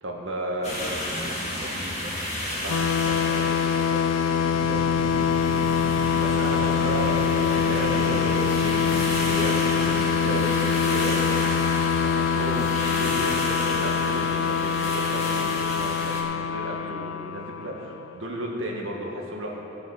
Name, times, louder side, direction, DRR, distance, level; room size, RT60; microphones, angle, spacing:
voice 1, 0.0-0.8 2.6-2.9 6.1-11.4 12.0-19.6, right 1 dB, 70° right, -2 dB, 1.8 m, -33 dB
sound 1, 0.6-16.2, left 1 dB, 35° left, 2.0 m, -33 dB
voice 2, 0.6-5.6 18.7-18.9, right 1 dB, 20° right, -4 dB, 1.3 m, -43 dB
sound 2, 2.7-18.1, left 7 dB, 85° left, 0.4 m, -24 dB
sound 3, 4.5-10.0, right 4 dB, 45° right, 0.3 m, -39 dB
17.5 x 6.0 x 5.9 m, 2.9 s
head